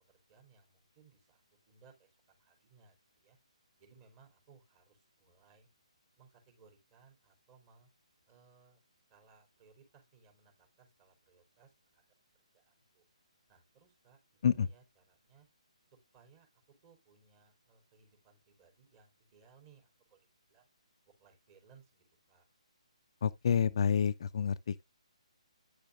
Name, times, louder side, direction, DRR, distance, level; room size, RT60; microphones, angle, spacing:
voice 1, 0.3-1.4 1.7-2.1 2.4-3.4 3.8-5.7 6.2-7.9 8.3-8.8 9.1-12.0 12.7-13.0 13.5-15.5 16.1-16.5 16.8-20.2 20.5-20.7 21.2-22.5, right 5 dB, 30° right, 4.1 m, -64 dB
voice 2, 23.2-24.8, left 7 dB, 50° left, 0.5 m, -29 dB
10.0 x 6.7 x 2.5 m
figure-of-eight pair, 140°, 4 cm